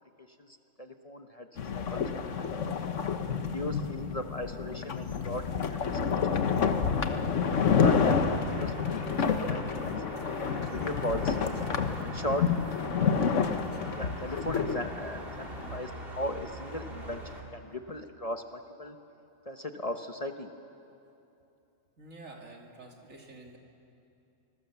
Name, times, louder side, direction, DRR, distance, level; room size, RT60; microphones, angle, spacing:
voice 1, 0.2-1.5 1.7-2.8 3.3-6.7 7.6-10.0 10.5-11.4 12.0-12.5 14.0-19.0 19.4-20.5, left 1 dB, 30° left, 6 dB, 1.0 m, -38 dB
sound 1, 1.6-15.8, left 6 dB, 70° left, 1.4 m, -29 dB
sound 2, 7.5-17.4, right 1 dB, 45° right, 3.0 m, -43 dB
voice 2, 22.0-23.6, right 2 dB, 80° right, 1 dB, 2.9 m, -48 dB
25.5 x 21.0 x 7.1 m, 2.7 s
omnidirectional pair, 1.3 m